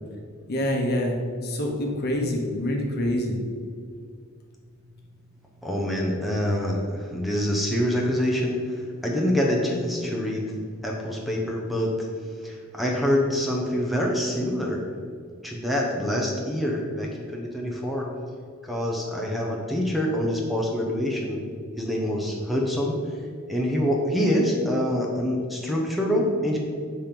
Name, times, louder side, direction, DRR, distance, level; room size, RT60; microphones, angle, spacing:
voice 1, 0.5-3.4, left 1 dB, 50° left, 1 dB, 1.0 m, -26 dB
voice 2, 5.6-10.5 10.8-12.1 12.4-14.8 15.4-18.1 18.6-21.4 21.8-23.0 23.5-26.6, equal, ahead, -2 dB, 0.7 m, -25 dB
5.5 x 4.4 x 5.1 m, 2.1 s
head